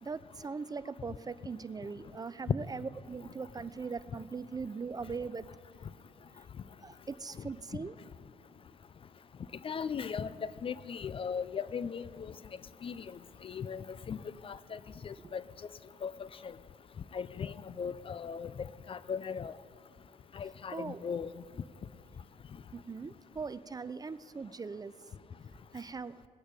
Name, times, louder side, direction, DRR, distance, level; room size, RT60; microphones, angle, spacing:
voice 1, 0.0-5.5 6.3-6.5 6.8-8.0 15.2-15.3 20.7-21.0 22.7-24.9 25.7-26.2, right 5 dB, 25° right, 16 dB, 0.5 m, -40 dB
voice 2, 9.6-10.3 10.6-12.3 12.8-13.0 13.4-14.2 14.4-15.4 16.0-16.3 17.1-18.5 18.9-19.5 20.4-21.3, left 6 dB, 35° left, 17 dB, 0.5 m, -38 dB
19.5 x 8.6 x 5.2 m, 2.2 s
hypercardioid pair, 55°, 16 cm